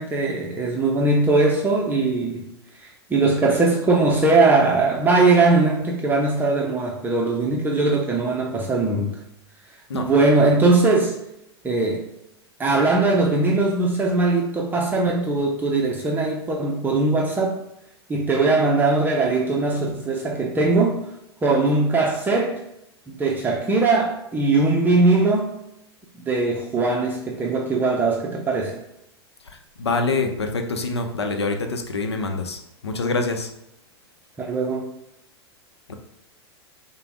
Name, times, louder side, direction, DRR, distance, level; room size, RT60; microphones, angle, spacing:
voice 1, 0.0-2.5 2.8-9.2 9.9-11.2 11.6-12.1 12.6-17.6 18.1-21.0 21.4-22.6 23.1-25.6 26.3-28.8 34.4-34.9, right 3 dB, 15° right, -1 dB, 0.6 m, -20 dB
voice 2, 29.8-33.5 35.9-36.0, left 3 dB, 75° left, 5 dB, 0.7 m, -25 dB
6.7 x 2.2 x 3.5 m, 0.84 s
figure-of-eight pair, 95°, 14 cm